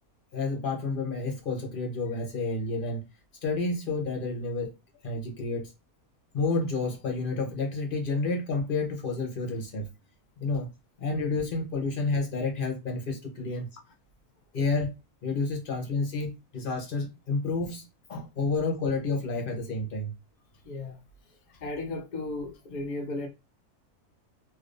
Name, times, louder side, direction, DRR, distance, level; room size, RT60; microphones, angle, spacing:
voice 1, 0.3-3.0 3.4-4.7 5.0-5.7 6.3-9.9 10.4-10.7 11.0-13.7 14.5-14.9 15.2-17.8 18.1-20.1, left 3 dB, 40° left, 0.9 m, -30 dB
voice 2, 20.6-21.0 21.6-23.3, left 2 dB, 75° left, 0.4 m, -35 dB
3.2 x 2.8 x 2.5 m
omnidirectional pair, 1.6 m